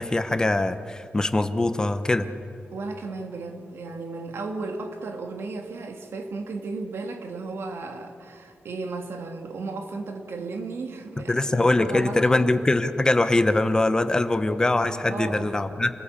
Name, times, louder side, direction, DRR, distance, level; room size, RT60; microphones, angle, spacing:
voice 1, 0.0-2.3 11.3-15.9, left 2 dB, 20° left, 10 dB, 1.0 m, -22 dB
voice 2, 2.7-12.5 15.0-15.5, right 3 dB, 85° right, 4 dB, 2.3 m, -34 dB
27.5 x 19.0 x 8.4 m, 2.5 s
wide cardioid pair, 145°, 4 cm